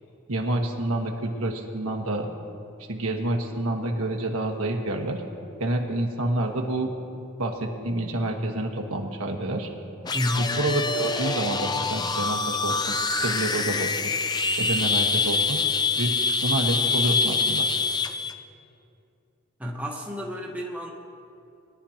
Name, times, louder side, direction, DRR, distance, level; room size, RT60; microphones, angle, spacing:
voice 1, 0.3-2.3 2.9-5.2 5.6-6.9 7.4-9.7 10.4-13.0 13.2-14.1 14.6-15.6 16.0-17.7, right 1 dB, 85° right, 2 dB, 1.4 m, -28 dB
sound 1, 10.0-18.3, left 4 dB, 20° left, 0.4 m, -25 dB
voice 2, 10.1-10.6 19.6-20.9, left 1 dB, 5° right, -2 dB, 1.1 m, -30 dB
21.0 x 11.5 x 2.9 m, 2.6 s
head